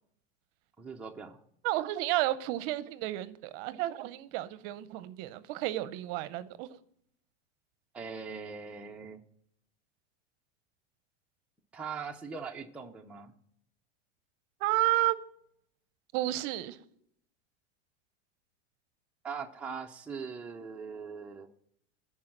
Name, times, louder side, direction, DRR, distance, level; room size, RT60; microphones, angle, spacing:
voice 1, 0.8-1.4 7.9-9.2 11.7-13.3 19.2-21.5, right 5 dB, 5° right, 0.5 m, -41 dB
voice 2, 1.6-6.8 14.6-15.2 16.1-16.8, right 16 dB, 50° right, 0.7 m, -31 dB
10.0 x 4.8 x 7.6 m
supercardioid pair, 135°, 35 cm